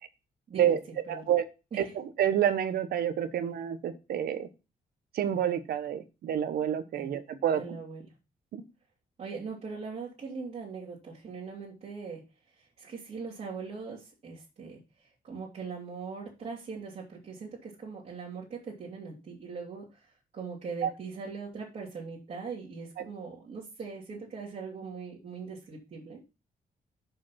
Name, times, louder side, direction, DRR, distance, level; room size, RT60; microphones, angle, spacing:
voice 1, 1.1-1.4 1.8-4.5 5.1-7.8 8.5-8.6 20.8-20.9, right 10 dB, 80° right, 10 dB, 1.1 m, -28 dB
voice 2, 7.5-8.0 9.2-12.2 12.6-26.2, right 5 dB, 45° right, -6 dB, 2.7 m, -41 dB
6.9 x 5.1 x 5.7 m, 0.28 s
cardioid pair, 145°, 16 cm